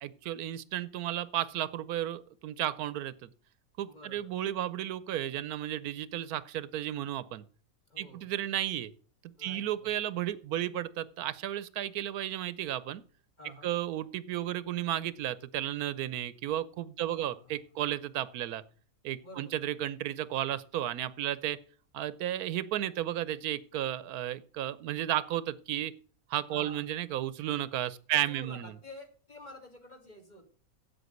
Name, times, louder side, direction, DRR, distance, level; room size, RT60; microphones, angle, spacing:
voice 1, 0.0-3.3 3.8-7.4 8.0-8.9 9.2-13.0 13.6-18.6 19.0-21.6 21.9-25.9 26.3-28.7, right 12 dB, 85° right, 17 dB, 1.2 m, -33 dB
voice 2, 3.8-4.3 7.9-8.3 9.4-10.1 13.4-13.7 17.0-17.5 19.2-19.5 26.5-26.9 28.1-30.5, left 1 dB, 30° left, 3 dB, 2.2 m, -50 dB
8.1 x 8.0 x 7.8 m, 0.42 s
omnidirectional pair, 1.5 m